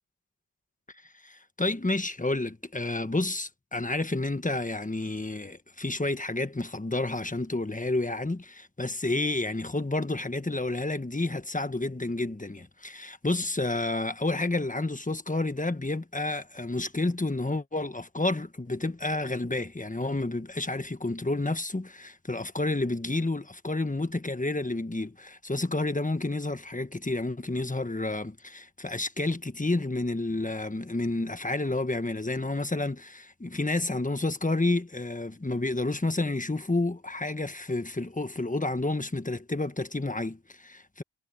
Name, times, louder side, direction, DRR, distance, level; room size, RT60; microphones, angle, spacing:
voice 1, 1.2-41.0, left 2 dB, 15° left, 1.4 m, -30 dB
cardioid pair, 55°, 48 cm